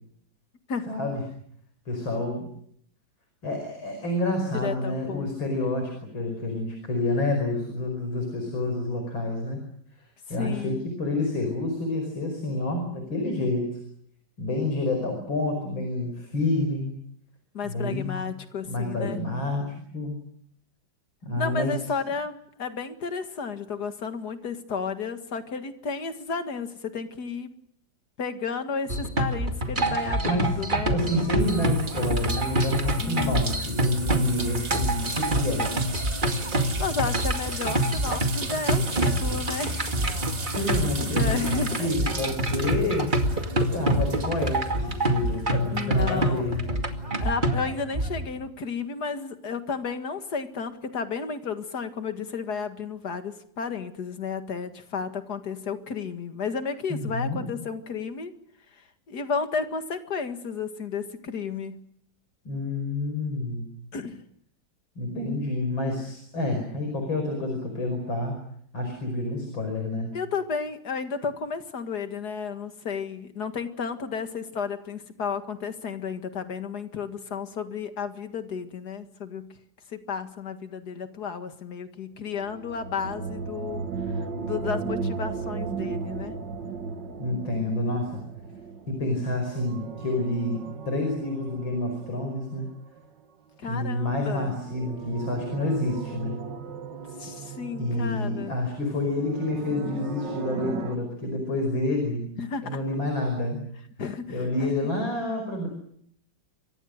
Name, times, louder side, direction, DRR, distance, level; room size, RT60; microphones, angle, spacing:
voice 1, 0.9-1.2 1.9-2.5 3.4-9.6 10.3-13.8 14.4-17.0 17.6-18.3 18.6-20.1 21.2-21.8 30.2-30.6 30.9-35.7 40.6-43.1 43.7-46.6 56.9-57.6 62.5-63.7 65.0-68.3 68.7-70.1 87.2-88.2 88.9-92.7 93.7-96.4 97.8-102.3 102.6-103.6 104.3-105.7, left 2 dB, 80° left, 4 dB, 6.0 m, -28 dB
voice 2, 4.5-5.3 10.4-10.8 17.5-19.2 21.4-27.5 28.2-31.0 33.0-33.6 36.8-40.0 40.6-41.9 45.7-46.5 47.2-58.3 59.1-61.9 63.9-64.2 70.1-79.5 79.9-83.8 84.4-86.3 93.6-94.6 97.2-98.6 102.4-102.8 104.0-104.7, left 5 dB, 55° left, 8 dB, 2.4 m, -32 dB
sound 1, 28.9-48.3, right 1 dB, 25° right, 2.3 m, -26 dB
sound 2, 31.4-45.4 45.7-47.0, right 4 dB, 45° right, 2.9 m, -37 dB
sound 3, 82.3-93.0 94.2-101.0, right 5 dB, 65° right, 2.4 m, -36 dB
28.0 x 24.0 x 6.6 m, 0.69 s
omnidirectional pair, 2.1 m